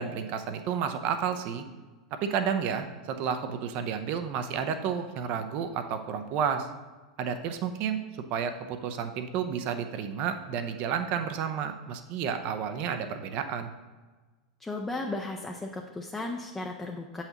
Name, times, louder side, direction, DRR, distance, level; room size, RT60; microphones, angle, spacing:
voice 1, 0.0-1.6 2.2-6.7 7.2-8.0 8.3-13.7, right 7 dB, 50° right, 8 dB, 0.6 m, -31 dB
voice 2, 14.6-17.2, left 2 dB, 10° left, 1 dB, 0.6 m, -35 dB
7.8 x 5.7 x 2.9 m, 1.3 s
hypercardioid pair, 95°, 3 cm